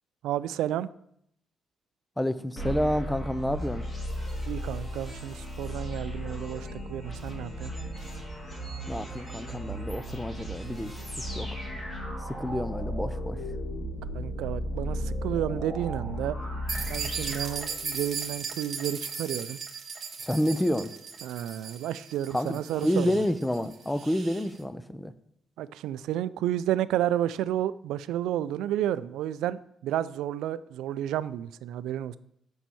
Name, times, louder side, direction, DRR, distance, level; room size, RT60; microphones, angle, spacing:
voice 1, 0.2-0.9 4.5-7.7 14.1-16.4 16.9-19.6 21.2-23.1 25.6-32.2, right 12 dB, 85° right, 16 dB, 0.3 m, -31 dB
voice 2, 2.2-3.8 8.9-11.0 11.4-11.6 12.4-13.4 20.2-20.9 22.3-25.1, left 1 dB, 10° left, 13 dB, 0.6 m, -29 dB
sound 1, 2.6-18.2, equal, 25° left, 3.0 m, -35 dB
sound 2, 16.7-24.5, right 5 dB, 45° right, 1.4 m, -37 dB
6.0 x 5.5 x 7.0 m, 0.72 s
cardioid pair, 90°, 0 cm